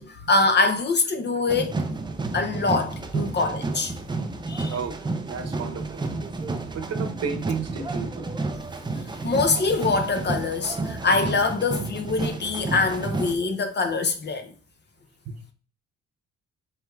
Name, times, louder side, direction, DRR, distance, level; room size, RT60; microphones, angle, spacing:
voice 1, 0.0-1.8 2.3-3.9 4.5-4.7 9.2-14.5, left 3 dB, 35° left, 0.7 m, -24 dB
sound 1, 1.5-13.4, right 3 dB, 15° right, 0.4 m, -31 dB
voice 2, 5.2-6.0 6.7-8.3 15.2-15.4, right 5 dB, 55° right, 0.9 m, -32 dB
4.5 x 3.3 x 2.3 m
cardioid pair, 90°, 30 cm